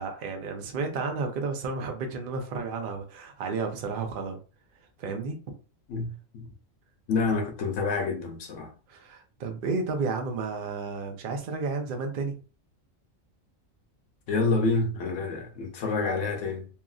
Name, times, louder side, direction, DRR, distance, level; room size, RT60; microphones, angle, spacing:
voice 1, 0.0-4.4 5.0-5.4 8.9-12.3, right 4 dB, 55° right, 0.7 m, -32 dB
voice 2, 5.9-6.5 7.1-8.7 14.3-16.7, left 3 dB, 70° left, 1.0 m, -28 dB
2.9 x 2.5 x 2.3 m
omnidirectional pair, 1.4 m